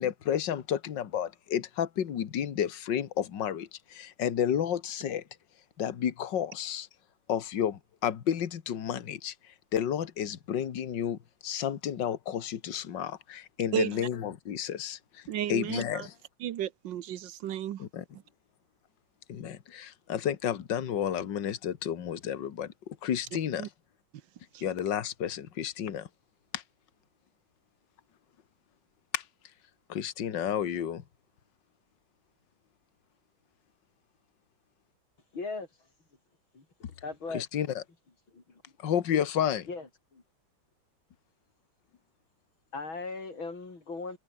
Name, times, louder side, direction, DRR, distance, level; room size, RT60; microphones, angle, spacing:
voice 1, 0.0-5.2 5.8-6.9 7.3-9.3 9.7-15.2 15.5-16.1 17.8-18.0 19.3-23.7 24.6-26.1 26.5-26.6 29.1-29.2 29.9-31.0 37.3-37.8 38.8-39.7, left 9 dB, 65° left, 2.1 m, -31 dB
voice 2, 13.7-14.1 15.3-16.1 16.4-17.8 23.6-23.7 24.5-24.6, right 11 dB, 70° right, 1.6 m, -33 dB
voice 3, 35.3-35.7 36.5-36.7 37.0-37.4 38.3-38.6 39.7-40.2 42.7-44.2, left 3 dB, 90° left, 5.6 m, -38 dB
omnidirectional pair, 2.1 m